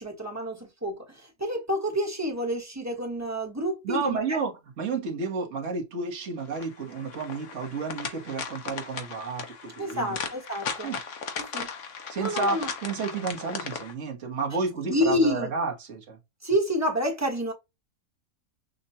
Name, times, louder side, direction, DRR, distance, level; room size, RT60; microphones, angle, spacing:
voice 1, 0.0-4.4 9.8-10.9 11.4-11.7 12.2-12.7 14.9-15.5 16.4-17.5, equal, 10° right, 1.1 m, -28 dB
voice 2, 3.8-10.2 10.8-11.0 12.1-16.2, right 4 dB, 60° right, 1.5 m, -31 dB
sound 1, 6.5-13.9, left 6 dB, 60° left, 1.2 m, -37 dB
6.5 x 2.4 x 2.7 m
omnidirectional pair, 1.5 m